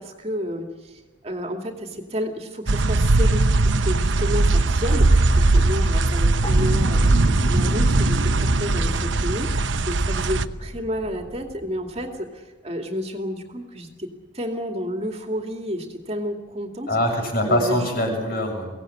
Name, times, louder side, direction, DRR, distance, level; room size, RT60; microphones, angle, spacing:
voice 1, 0.0-14.1 14.3-16.9 17.5-17.9, equal, 35° right, 4 dB, 2.4 m, -31 dB
sound 1, 2.7-10.4, right 2 dB, 75° right, 0.9 m, -19 dB
sound 2, 6.4-12.1, equal, 20° left, 1.0 m, -29 dB
voice 2, 16.9-18.7, left 1 dB, 50° left, 2 dB, 7.3 m, -24 dB
24.0 x 17.5 x 9.8 m, 1.2 s
head